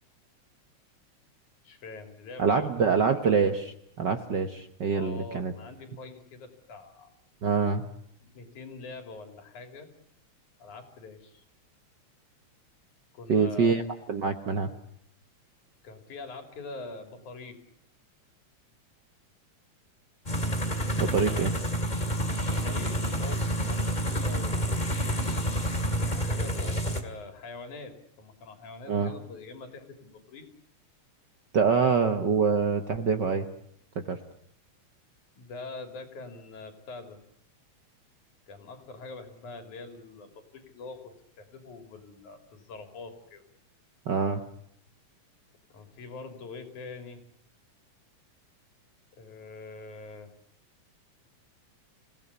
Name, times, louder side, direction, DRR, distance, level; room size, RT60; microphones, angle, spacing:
voice 1, 1.6-2.9 4.9-7.1 8.2-9.9 10.6-11.4 13.1-13.8 15.8-17.6 21.2-21.5 22.5-24.8 26.0-30.5 35.3-37.2 38.5-43.5 45.7-47.2 49.2-50.3, left 3 dB, 85° left, 6 dB, 4.5 m, -44 dB
voice 2, 2.4-5.5 7.4-7.8 13.3-13.8 14.1-14.7 21.0-21.5 28.9-29.1 31.5-33.5 33.9-34.2 44.1-44.4, right 5 dB, 55° right, 7 dB, 1.2 m, -25 dB
sound 1, 20.3-27.0, right 1 dB, 15° left, 2.0 m, -28 dB
28.0 x 17.0 x 9.7 m, 0.71 s
omnidirectional pair, 3.4 m